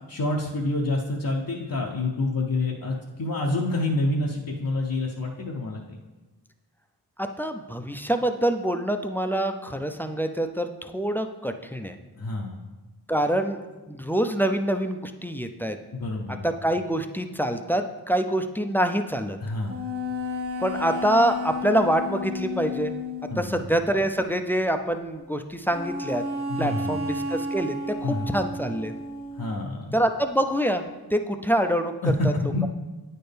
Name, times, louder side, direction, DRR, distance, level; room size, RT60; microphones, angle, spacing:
voice 1, 0.1-6.0 12.2-12.6 15.9-16.4 19.4-19.8 23.3-23.6 26.5-26.9 28.0-28.3 29.4-29.9 32.0-32.1 32.5-32.7, left 2 dB, 60° left, -2 dB, 0.7 m, -28 dB
voice 2, 7.2-12.0 13.1-13.6 13.9-15.8 16.4-19.4 20.6-22.9 23.4-26.2 26.6-28.9 29.9-30.8 31.1-31.9 32.2-32.3, right 1 dB, 5° left, 6 dB, 0.4 m, -25 dB
sound 1, 19.7-23.3 25.7-29.6, left 1 dB, 35° right, 1.5 m, -32 dB
9.1 x 4.4 x 3.4 m, 1.2 s
wide cardioid pair, 45°, 39 cm